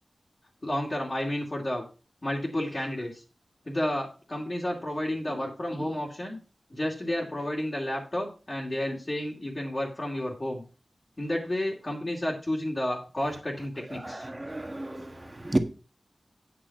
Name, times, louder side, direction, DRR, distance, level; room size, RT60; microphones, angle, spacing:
voice 1, 0.6-1.8 2.2-3.2 3.7-6.4 6.7-10.6 11.2-14.3, left 1 dB, 35° left, 2.5 m, -31 dB
voice 2, 13.9-15.6, right 1 dB, 25° right, 1.5 m, -32 dB
9.1 x 6.1 x 5.7 m
wide cardioid pair, 65°, 0 cm